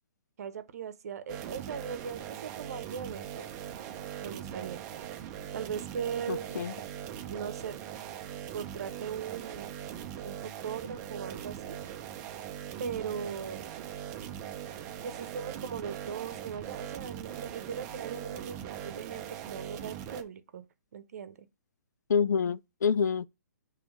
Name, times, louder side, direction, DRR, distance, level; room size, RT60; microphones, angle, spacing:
voice 1, 0.4-3.5 4.2-5.0 5.5-6.6 7.2-7.7 8.5-9.7 10.2-11.8 12.8-13.7 15.0-20.7 20.9-21.5, right 7 dB, 60° right, 1.0 m, -39 dB
sound 1, 1.3-20.2, right 10 dB, 30° right, 0.7 m, -41 dB
voice 2, 6.3-6.7 22.1-23.3, left 6 dB, 80° left, 0.3 m, -27 dB
7.0 x 3.2 x 4.8 m
hypercardioid pair, 140°, 9 cm